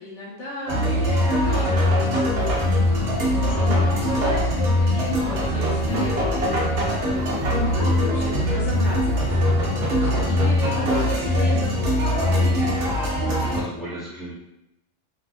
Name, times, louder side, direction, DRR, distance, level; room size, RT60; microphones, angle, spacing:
voice 1, 0.0-2.7 3.0-12.2, left 2 dB, 70° left, -4 dB, 1.1 m, -33 dB
sound 1, 0.7-13.6, left 1 dB, 60° right, 0.8 m, -22 dB
sound 2, 2.4-9.5, right 3 dB, 85° right, 1.0 m, -36 dB
born free, 2.7-9.4, left 4 dB, 90° left, 1.0 m, -40 dB
voice 2, 13.2-14.3, equal, ahead, -9 dB, 0.8 m, -34 dB
2.6 x 2.3 x 2.3 m, 0.86 s
omnidirectional pair, 1.3 m